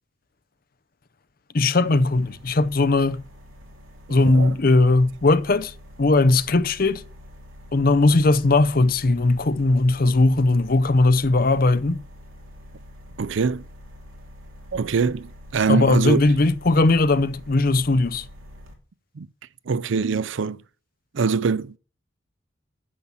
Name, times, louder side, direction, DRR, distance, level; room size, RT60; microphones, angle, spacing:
voice 1, 1.5-3.2 4.1-7.0 7.7-12.0 15.7-18.3, left 2 dB, 45° left, 0.6 m, -19 dB
sound 1, 1.8-18.7, left 1 dB, 85° right, 2.8 m, -45 dB
voice 2, 4.1-4.5 13.2-13.7 14.7-16.2 19.2-19.3 19.7-20.6 21.1-21.8, right 5 dB, 70° right, 0.5 m, -23 dB
9.7 x 7.1 x 7.3 m
head